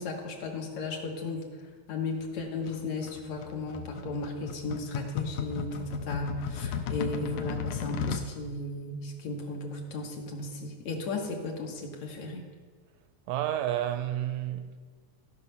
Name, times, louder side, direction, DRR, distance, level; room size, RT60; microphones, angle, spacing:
voice 1, 0.0-1.5 1.9-12.4, left 2 dB, 70° left, 2.3 m, -35 dB
sound 1, 2.7-8.3, left 7 dB, 90° left, 2.1 m, -35 dB
voice 2, 13.3-14.8, right 12 dB, 80° right, 1.7 m, -30 dB
15.5 x 5.5 x 5.5 m
omnidirectional pair, 3.4 m